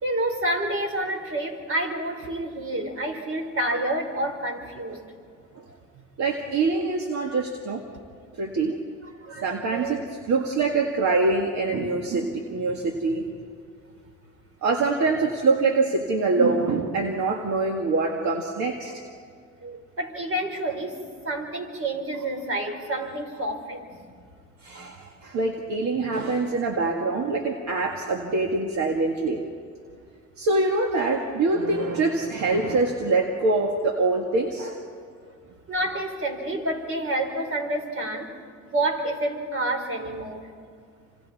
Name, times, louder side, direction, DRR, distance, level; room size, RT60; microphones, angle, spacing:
voice 1, 0.0-5.0 9.2-9.4 9.7-10.0 19.6-23.9 24.7-24.9 35.7-40.5, right 1 dB, 45° right, 4 dB, 4.3 m, -29 dB
voice 2, 6.2-7.8 8.4-8.8 9.4-13.3 14.6-19.0 24.6-29.4 30.4-34.8, right 3 dB, 65° right, 2 dB, 2.0 m, -24 dB
29.0 x 26.5 x 4.3 m, 2.2 s
cardioid pair, 90°, 30 cm